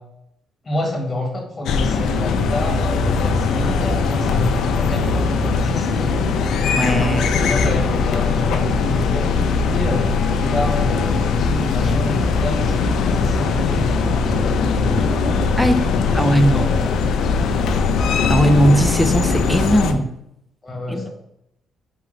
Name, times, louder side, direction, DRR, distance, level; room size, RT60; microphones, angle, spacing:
voice 1, 0.6-6.3 7.0-9.3 9.6-15.4 16.0-17.1 20.6-21.1, left 1 dB, 25° left, 1 dB, 1.3 m, -28 dB
sound 1, 1.7-19.9, left 4 dB, 75° left, 0.4 m, -20 dB
voice 2, 6.8-7.3 15.6-16.7 18.3-20.1 20.9-21.1, equal, ahead, 7 dB, 0.5 m, -18 dB
4.5 x 3.6 x 3.2 m, 0.79 s
cardioid pair, 90°, 0 cm